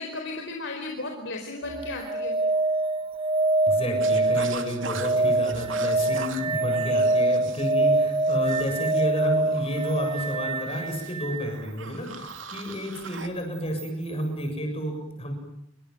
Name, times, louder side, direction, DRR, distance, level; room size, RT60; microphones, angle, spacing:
voice 1, 0.0-2.3, left 2 dB, 65° left, 2 dB, 4.6 m, -34 dB
sound 1, 1.6-11.5 13.8-13.9, right 2 dB, 25° right, 1.2 m, -25 dB
voice 2, 3.7-15.3, equal, 30° left, 4 dB, 7.3 m, -31 dB
sound 2, 4.0-13.3, right 5 dB, 70° right, 2.6 m, -41 dB
28.0 x 25.0 x 7.9 m, 0.77 s
head